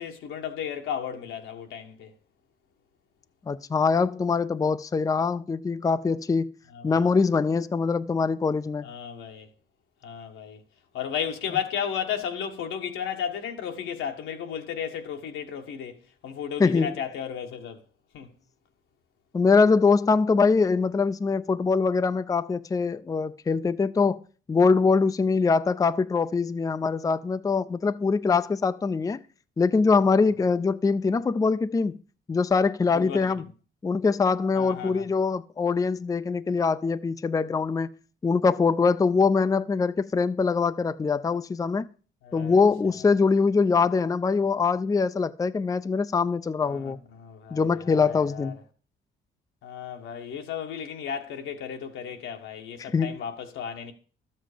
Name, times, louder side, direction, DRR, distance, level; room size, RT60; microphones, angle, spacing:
voice 1, 0.0-2.1 6.7-7.1 8.8-9.5 10.0-10.6 10.9-16.0 16.2-17.8 18.1-18.3 32.9-33.3 34.6-35.0 42.2-42.6 46.6-48.5 49.6-53.9, left 8 dB, 85° left, 1.4 m, -34 dB
voice 2, 3.5-6.5 6.8-8.9 16.6-17.0 19.3-24.2 24.5-29.2 29.6-32.0 32.3-33.4 33.8-37.9 38.2-41.9 42.3-47.0 47.5-48.6 52.8-53.2, left 4 dB, 15° left, 0.4 m, -23 dB
12.5 x 7.5 x 5.0 m
cardioid pair, 90°, 20 cm